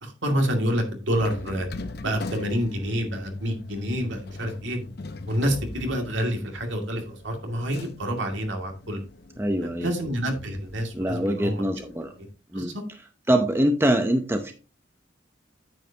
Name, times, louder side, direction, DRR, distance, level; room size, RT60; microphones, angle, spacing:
voice 1, 0.0-1.7 2.0-4.8 5.3-9.0 9.8-11.6 12.5-12.8, equal, 70° right, 3 dB, 2.3 m, -28 dB
sound 1, 1.1-12.3, left 2 dB, 50° left, 0.8 m, -41 dB
voice 2, 9.4-9.9 10.9-12.1 12.5-12.7 13.3-14.5, right 1 dB, 10° right, 5 dB, 0.7 m, -24 dB
9.1 x 8.3 x 2.8 m, 0.33 s
head